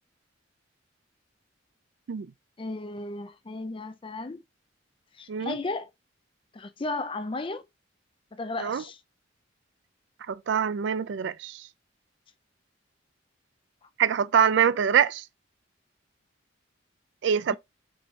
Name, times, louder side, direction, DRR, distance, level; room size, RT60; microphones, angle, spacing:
voice 1, 2.6-4.4 5.1-5.9 6.5-7.6 8.3-9.0 17.5-17.6, left 2 dB, 25° left, 0.5 m, -34 dB
voice 2, 10.3-11.7 14.0-15.2 17.2-17.6, right 7 dB, 65° right, 0.3 m, -24 dB
5.4 x 3.1 x 2.7 m
head